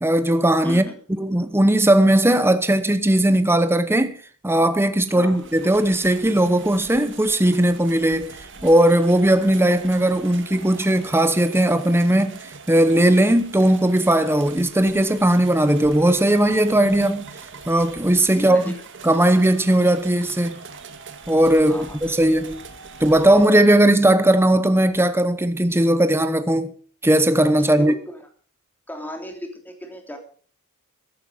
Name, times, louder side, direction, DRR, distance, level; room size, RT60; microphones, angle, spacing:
voice 1, 0.0-4.2 4.4-8.3 8.6-12.4 12.7-17.3 17.7-18.7 19.0-20.6 21.3-22.6 23.0-26.7 27.0-27.9, right 1 dB, 10° right, 0.9 m, -18 dB
voice 2, 0.6-1.0 5.1-5.5 18.3-18.8 21.7-22.0 27.6-28.3 28.9-30.2, equal, 10° left, 3.0 m, -35 dB
sound 1, 5.0-23.5, right 5 dB, 55° right, 2.0 m, -42 dB
15.0 x 11.5 x 5.2 m
head